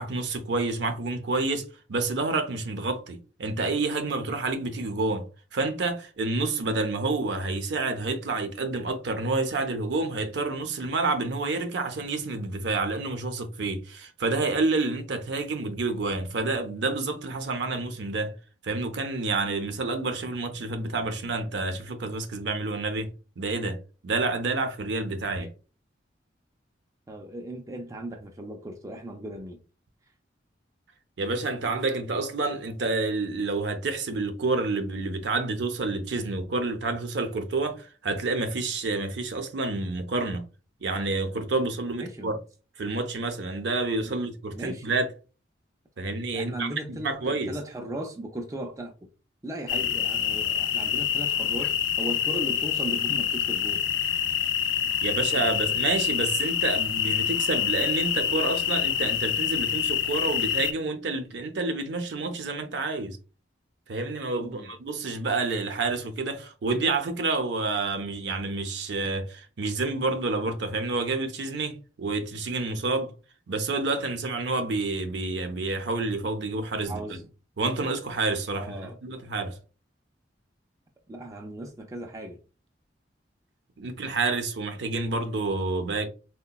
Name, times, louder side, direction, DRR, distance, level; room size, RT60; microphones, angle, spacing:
voice 1, 0.0-5.3 5.5-18.4 18.6-23.1 23.4-25.5 31.2-40.4 40.8-42.4 42.8-45.1 46.0-47.6 55.0-63.2 63.9-73.1 73.5-77.2 77.6-79.6 83.8-86.1, right 3 dB, 65° right, 0.5 m, -29 dB
voice 2, 27.1-29.6 42.0-42.3 44.1-44.2 44.5-44.9 46.3-48.9 49.4-53.8 64.4-64.7 76.8-77.3 78.5-79.0 81.1-82.4, right 1 dB, 15° right, 0.3 m, -37 dB
sound 1, 49.7-60.7, left 9 dB, 80° left, 0.4 m, -26 dB
3.8 x 2.1 x 2.2 m
head